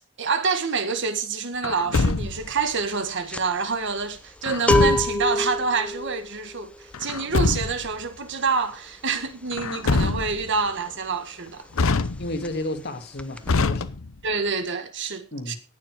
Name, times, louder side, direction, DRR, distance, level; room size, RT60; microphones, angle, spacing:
voice 1, 0.0-11.6 14.2-15.5, right 4 dB, 60° right, 1.7 m, -27 dB
Truck, 1.6-2.6 4.4-5.3 6.9-7.9 9.5-10.6 11.7-12.6 13.5-14.3, left 3 dB, 70° left, 0.8 m, -24 dB
sound 1, 2.2-2.4 2.7-11.3 11.6-11.8 12.0-12.9 13.2-13.5, left 2 dB, 5° left, 0.8 m, -28 dB
voice 2, 12.2-13.9 15.3-15.6, left 1 dB, 50° left, 2.1 m, -32 dB
18.0 x 7.3 x 4.7 m
head